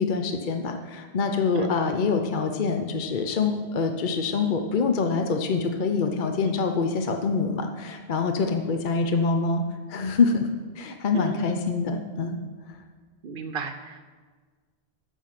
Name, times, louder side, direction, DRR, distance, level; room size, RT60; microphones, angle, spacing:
voice 1, 0.0-9.6 9.9-10.5 10.7-12.4, left 4 dB, 50° left, 5 dB, 0.9 m, -25 dB
voice 2, 11.1-11.5 13.2-14.0, right 6 dB, 65° right, 6 dB, 0.8 m, -33 dB
15.5 x 6.4 x 5.8 m, 1.5 s
omnidirectional pair, 1.1 m